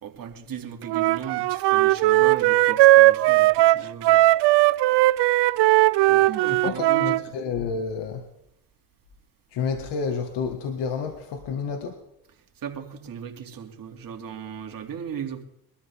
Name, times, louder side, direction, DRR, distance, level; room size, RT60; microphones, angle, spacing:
voice 1, 0.0-4.3 6.1-7.4 12.6-15.4, right 8 dB, 50° right, 2.7 m, -37 dB
Wind instrument woodwind instrument, 0.9-7.2, right 17 dB, 70° right, 0.7 m, -18 dB
voice 2, 6.2-8.2 9.5-12.0, left 5 dB, 65° left, 1.8 m, -30 dB
22.0 x 13.0 x 3.6 m
supercardioid pair, 80°, 44 cm